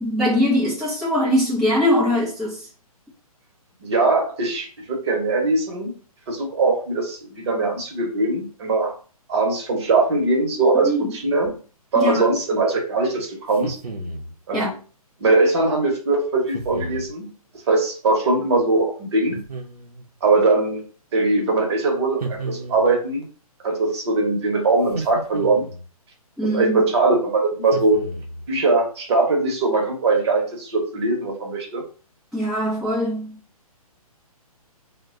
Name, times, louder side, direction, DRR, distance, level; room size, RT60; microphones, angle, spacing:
voice 1, 0.0-2.7 10.8-11.1 12.0-12.2 14.5-14.7 26.4-26.8 32.3-33.4, equal, ahead, 0.4 m, -21 dB
voice 2, 3.8-5.9 6.3-8.9 9.3-11.5 11.9-13.8 14.5-14.8 15.2-17.3 17.7-19.4 20.2-20.8 21.1-23.3 23.6-25.7 26.5-28.0 28.5-31.8, right 3 dB, 45° right, 0.9 m, -21 dB
sound 1, 13.5-14.3 16.5-17.1 19.3-20.1 22.2-23.1 24.9-25.9 27.7-28.5, right 2 dB, 90° right, 0.6 m, -33 dB
2.2 x 2.1 x 3.6 m
figure-of-eight pair, 130°, 19 cm